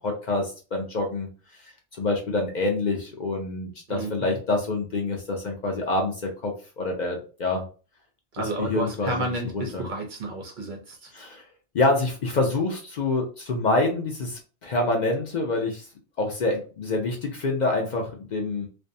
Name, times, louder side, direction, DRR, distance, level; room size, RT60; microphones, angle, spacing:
voice 1, 0.0-1.6 2.0-7.6 8.6-9.3 9.5-9.8 11.1-11.4 11.7-15.9 16.2-18.7, left 2 dB, 60° left, 1 dB, 0.4 m, -26 dB
voice 2, 3.9-4.4 8.3-11.1, right 2 dB, 50° right, 2 dB, 0.6 m, -31 dB
2.5 x 2.2 x 2.6 m, 0.35 s
omnidirectional pair, 1.3 m